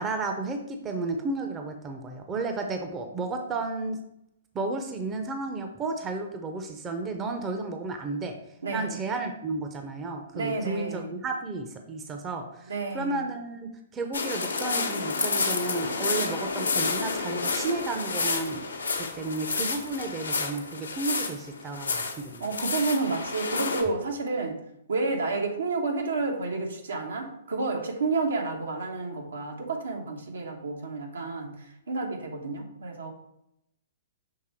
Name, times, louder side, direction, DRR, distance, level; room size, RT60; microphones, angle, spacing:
voice 1, 0.0-4.0 4.5-8.4 8.7-18.6 19.0-22.4, right 3 dB, 20° right, 5 dB, 0.6 m, -33 dB
voice 2, 8.6-9.0 10.3-11.1 12.7-13.2 22.4-24.6 24.9-33.1, right 3 dB, 80° right, 2 dB, 1.1 m, -30 dB
sound 1, 14.1-23.8, left 4 dB, 85° left, 0.9 m, -30 dB
6.5 x 3.3 x 4.4 m, 0.80 s
hypercardioid pair, 125°, 0 cm